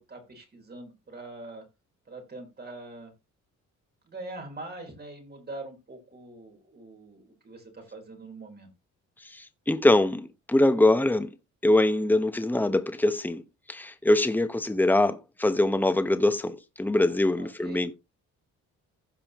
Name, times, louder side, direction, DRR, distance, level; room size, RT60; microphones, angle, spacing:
voice 1, 0.0-1.6 2.1-3.1 4.0-8.7 17.4-17.9, right 2 dB, 35° right, 4.4 m, -43 dB
voice 2, 9.3-11.3 11.6-13.4 13.7-18.0, left 1 dB, 5° left, 1.1 m, -23 dB
15.5 x 5.5 x 3.1 m
cardioid pair, 90°, 30 cm